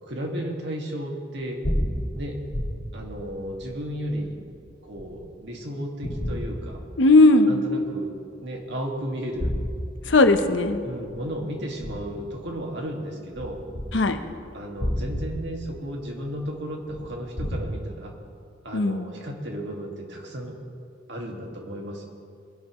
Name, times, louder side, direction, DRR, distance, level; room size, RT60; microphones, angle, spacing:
voice 1, 0.0-1.6 2.1-2.4 2.9-4.4 4.8-6.8 7.5-8.1 8.4-9.5 10.8-13.6 14.5-18.1 18.6-20.6 21.1-22.0, equal, 65° right, 0 dB, 2.0 m, -34 dB
sound 1, 1.4-5.5 6.0-7.4 7.8-7.9 9.1-12.8 13.3-17.6, equal, 55° left, 1.8 m, -32 dB
voice 2, 7.0-7.6 10.1-10.8 13.9-14.2 18.7-19.1, left 2 dB, 70° left, 8 dB, 0.8 m, -17 dB
22.0 x 11.0 x 3.1 m, 2.3 s
head